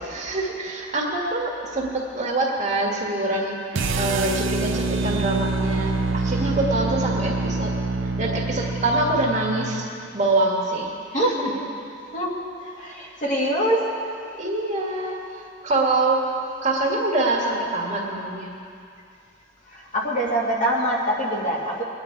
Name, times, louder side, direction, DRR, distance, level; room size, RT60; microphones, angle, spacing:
voice 1, 0.0-3.6 4.0-7.7 8.0-9.9 10.1-11.5 14.4-16.3 16.6-18.5, right 2 dB, 40° right, -2 dB, 1.8 m, -25 dB
sound 1, 3.7-9.9, right 3 dB, 80° right, 0.7 m, -25 dB
voice 2, 12.8-13.9 19.7-21.8, right 1 dB, 40° left, -4 dB, 2.4 m, -24 dB
21.0 x 9.8 x 4.6 m, 2.4 s
head